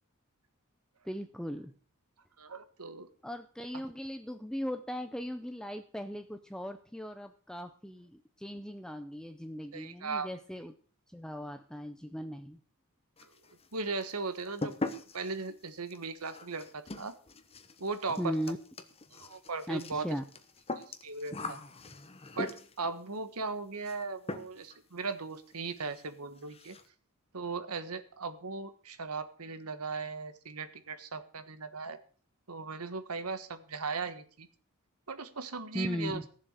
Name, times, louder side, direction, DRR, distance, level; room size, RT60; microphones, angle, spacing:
voice 1, 1.0-1.7 3.2-10.7 11.1-12.6 18.2-18.6 19.7-20.2 35.7-36.2, equal, 5° left, 8 dB, 0.5 m, -38 dB
voice 2, 2.4-3.1 9.7-10.3 13.7-17.1 17.8-18.4 19.1-20.1 20.9-21.6 22.3-26.8 27.3-32.0 32.5-34.5 35.1-36.2, right 4 dB, 80° right, 11 dB, 1.4 m, -38 dB
sound 1, 13.2-13.7 14.0-22.9 23.8-24.0 24.3-24.8 25.0-25.1 25.5-25.6 25.9-26.1 26.4-26.9, left 2 dB, 25° left, 1.1 m, -41 dB
15.0 x 7.4 x 6.5 m, 0.43 s
head